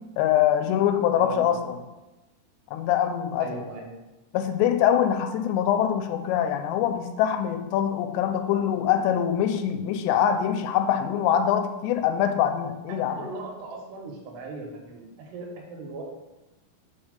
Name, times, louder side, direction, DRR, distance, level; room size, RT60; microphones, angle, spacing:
voice 1, 0.2-1.8 2.7-3.5 4.3-13.2, left 9 dB, 85° left, 8 dB, 2.7 m, -24 dB
voice 2, 1.2-1.6 3.4-3.9 12.9-16.0, right 3 dB, 80° right, 1 dB, 3.0 m, -38 dB
5.7 x 4.4 x 5.1 m, 1.1 s
omnidirectional pair, 5.0 m